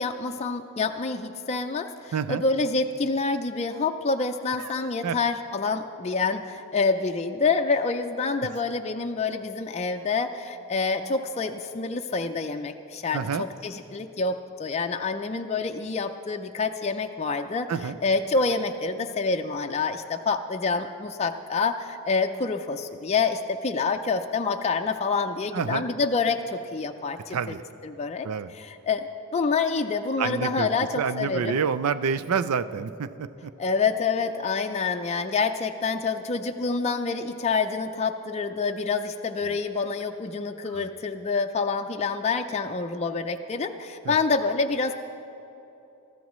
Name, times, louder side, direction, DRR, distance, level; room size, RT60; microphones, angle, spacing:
voice 1, 0.0-27.5 27.8-29.1 29.3-31.6 33.6-44.9, left 4 dB, 30° left, 5 dB, 0.4 m, -27 dB
voice 2, 2.1-2.4 4.6-5.2 13.1-13.5 17.7-18.0 25.5-25.9 27.3-27.6 28.2-28.5 30.2-30.7 31.0-33.5 40.7-40.9 44.0-44.2, right 6 dB, 80° right, 12 dB, 0.4 m, -28 dB
21.5 x 13.5 x 3.1 m, 2.9 s
head